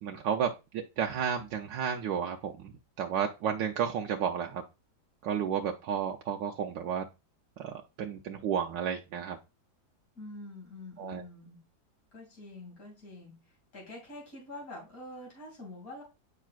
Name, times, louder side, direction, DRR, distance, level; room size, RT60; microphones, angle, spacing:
voice 1, 0.0-2.5 3.0-4.6 5.2-7.1 7.6-9.4 11.0-11.2, right 8 dB, 70° right, 2 dB, 1.3 m, -32 dB
voice 2, 10.2-11.6 12.1-13.4 13.7-16.0, left 2 dB, 45° left, -1 dB, 3.2 m, -46 dB
9.1 x 5.8 x 2.4 m, 0.27 s
omnidirectional pair, 2.1 m